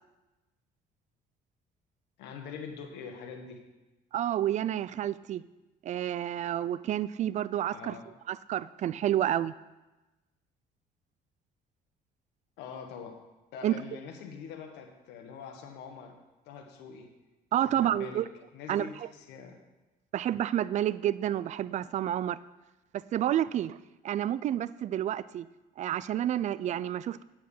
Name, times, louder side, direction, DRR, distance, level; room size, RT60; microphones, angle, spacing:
voice 1, 2.2-3.6 7.7-8.1 12.6-13.2 13.5-16.2 16.4-17.1 17.6-18.2 18.5-19.6, left 6 dB, 90° left, 4 dB, 1.5 m, -44 dB
voice 2, 4.1-5.4 5.8-8.0 8.3-9.5 13.6-13.7 17.5-18.3 18.7-19.1 20.1-22.4 22.9-23.8 24.0-25.5 25.8-27.2, right 11 dB, 45° right, 18 dB, 0.4 m, -29 dB
8.8 x 7.5 x 5.6 m, 1.1 s
cardioid pair, 110°, 17 cm